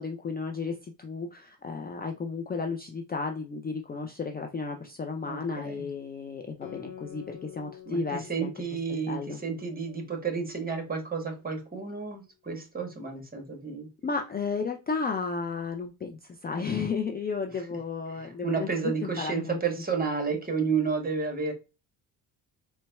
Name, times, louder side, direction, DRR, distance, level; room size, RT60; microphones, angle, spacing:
voice 1, 0.0-8.5 8.9-9.4 14.0-19.6 20.0-20.3, left 4 dB, 20° left, 0.4 m, -33 dB
voice 2, 5.2-5.8 7.9-13.9 18.1-21.5, right 5 dB, 20° right, 1.2 m, -31 dB
Guitar, 6.6-11.6, left 10 dB, 85° left, 0.8 m, -48 dB
3.9 x 2.2 x 2.3 m
supercardioid pair, 60°, 44 cm